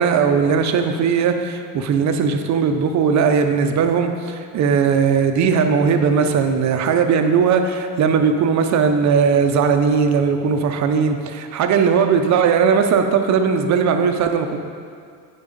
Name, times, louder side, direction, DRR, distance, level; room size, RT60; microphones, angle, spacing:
voice 1, 0.0-14.6, right 6 dB, 35° right, 6 dB, 0.5 m, -18 dB
8.3 x 5.2 x 5.1 m, 2.3 s
cardioid pair, 150°, 50 cm